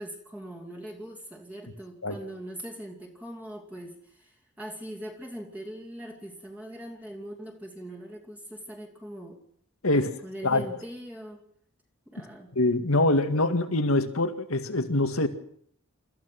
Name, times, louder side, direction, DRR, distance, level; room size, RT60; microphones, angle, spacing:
voice 1, 0.0-9.4 9.9-11.4 12.1-12.5, right 1 dB, 5° right, -2 dB, 2.7 m, -41 dB
voice 2, 12.6-15.3, left 2 dB, 80° left, 7 dB, 2.1 m, -24 dB
28.5 x 15.0 x 6.1 m, 0.64 s
head